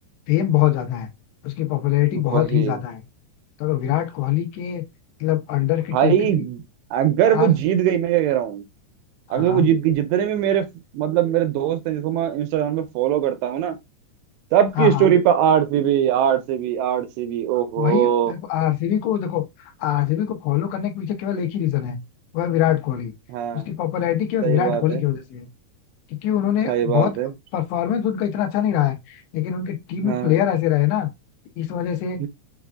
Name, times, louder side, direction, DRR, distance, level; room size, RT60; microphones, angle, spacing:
voice 1, 0.3-1.1 1.4-3.0 3.6-4.8 5.2-6.5 7.3-7.5 9.3-9.7 14.8-15.1 17.8-19.4 19.8-22.0 22.3-23.1 23.5-25.5 26.1-27.1 27.5-31.1 31.6-32.2, left 12 dB, 85° left, 2.9 m, -23 dB
voice 2, 2.1-2.8 5.9-6.6 6.9-8.6 9.3-10.7 10.9-13.8 14.5-18.3 23.3-23.7 24.4-25.0 26.7-27.3 30.0-30.4 32.2-32.3, right 10 dB, 85° right, 2.7 m, -21 dB
6.8 x 2.4 x 2.3 m
omnidirectional pair, 4.9 m